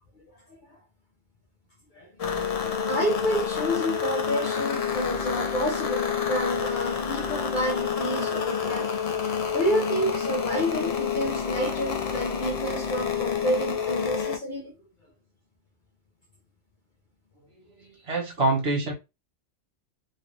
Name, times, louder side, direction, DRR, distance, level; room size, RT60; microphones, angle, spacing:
voice 1, 1.9-8.9 9.5-14.7, equal, 50° left, 0.7 m, -29 dB
sound 1, 2.2-14.4, left 6 dB, 70° left, 0.3 m, -28 dB
voice 2, 17.5-18.9, right 2 dB, 55° right, 1.4 m, -27 dB
3.2 x 2.5 x 3.1 m
omnidirectional pair, 1.3 m